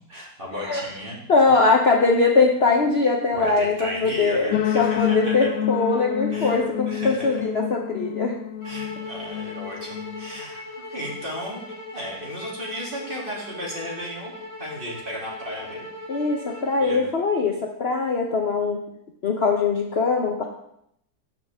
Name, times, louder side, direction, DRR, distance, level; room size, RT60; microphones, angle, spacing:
voice 1, 0.1-1.2 3.3-5.5 6.3-7.4 8.6-10.6 10.9-11.6 11.9-14.3 14.6-15.9 16.8-17.1, equal, 30° right, -4 dB, 2.8 m, -34 dB
voice 2, 1.3-8.4 16.1-18.8 19.2-20.4, left 4 dB, 45° left, 1 dB, 1.0 m, -21 dB
sound 1, 4.5-10.4, left 11 dB, 80° left, 1.2 m, -28 dB
sound 2, 8.6-17.0, left 2 dB, 15° left, 4.0 m, -39 dB
16.5 x 6.0 x 3.5 m, 0.75 s
omnidirectional pair, 1.8 m